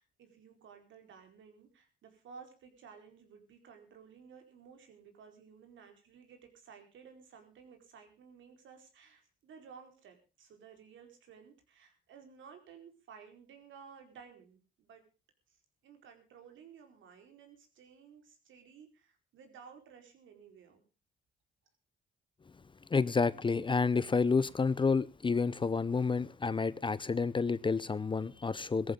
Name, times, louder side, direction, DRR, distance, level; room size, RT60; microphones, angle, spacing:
voice 1, 0.0-15.0 15.8-20.8, right 6 dB, 75° right, 4.7 m, -55 dB
voice 2, 22.9-28.9, left 4 dB, 25° left, 0.7 m, -29 dB
17.5 x 14.5 x 3.8 m
cardioid pair, 90°, 20 cm